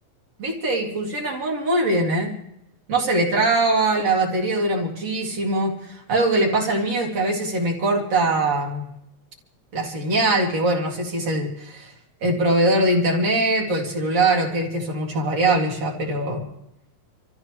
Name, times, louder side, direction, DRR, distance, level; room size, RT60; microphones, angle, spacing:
voice 1, 0.4-2.3 2.9-8.8 9.7-11.9 12.2-16.4, right 2 dB, 60° right, -2 dB, 3.5 m, -22 dB
27.5 x 15.0 x 3.2 m, 0.78 s
omnidirectional pair, 3.4 m